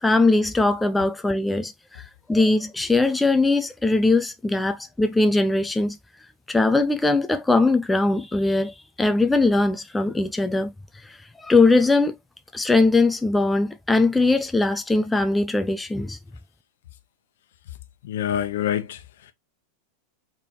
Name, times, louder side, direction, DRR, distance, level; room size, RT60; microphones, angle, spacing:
voice 1, 0.0-2.0 2.3-6.0 6.5-10.7 11.1-12.2 12.5-16.2, left 3 dB, 5° left, 0.4 m, -21 dB
voice 2, 18.0-19.3, left 10 dB, 80° left, 0.8 m, -27 dB
4.5 x 3.5 x 3.0 m
supercardioid pair, 165°, 0 cm